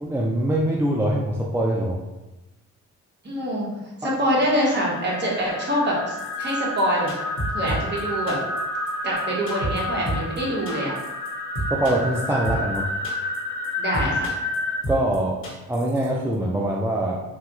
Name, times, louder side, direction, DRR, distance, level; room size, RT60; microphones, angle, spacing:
voice 1, 0.0-2.0 4.0-4.1 11.7-12.8 14.9-15.4 15.7-17.2, right 1 dB, 10° right, -3 dB, 0.3 m, -23 dB
voice 2, 3.2-3.7 4.0-7.1 7.5-8.4 9.0-11.0 13.8-14.3, equal, 35° right, -4 dB, 1.2 m, -25 dB
sound 1, 4.8-14.8, left 1 dB, 65° left, 0.8 m, -30 dB
sound 2, 6.2-6.5 6.8-6.9 7.1-8.0 8.3-8.6 8.9-9.0 9.2-9.3 9.5-9.8 10.1-10.4 10.7-11.3 11.5-12.2 12.4-12.8 13.0-13.4 13.6-13.7 13.9-14.6 14.8-15.2 15.4-16.1 16.3-16.4, right 1 dB, 45° left, 1.0 m, -30 dB
3.2 x 2.2 x 2.9 m, 1.0 s
cardioid pair, 90°, 30 cm